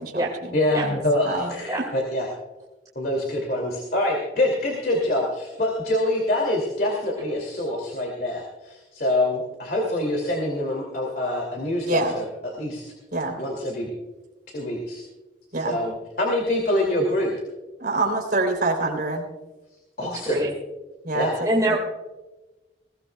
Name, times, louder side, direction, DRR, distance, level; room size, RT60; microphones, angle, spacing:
voice 1, 0.0-0.6 0.8-1.5 11.9-12.1 13.1-13.4 15.5-15.8 17.8-19.2 21.0-21.8, right 2 dB, 50° right, 1 dB, 3.5 m, -26 dB
voice 2, 0.5-2.3 2.9-12.2 12.6-12.9 13.4-13.9 14.5-15.0 15.6-15.9 16.2-17.3 20.0-20.5 21.1-21.3, left 1 dB, 50° left, 0 dB, 2.6 m, -25 dB
voice 3, 20.0-20.5 21.5-21.8, right 1 dB, 20° right, -2 dB, 1.9 m, -24 dB
21.0 x 17.0 x 2.3 m, 1.1 s
head